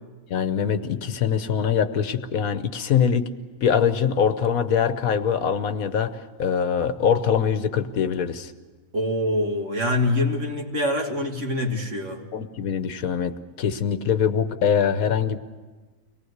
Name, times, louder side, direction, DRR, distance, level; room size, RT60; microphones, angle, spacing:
voice 1, 0.3-3.3 3.6-8.5 12.3-15.4, left 7 dB, 70° left, 1.3 m, -23 dB
voice 2, 8.9-12.2, left 1 dB, 55° right, 2.2 m, -25 dB
24.5 x 19.0 x 8.0 m
omnidirectional pair, 1.6 m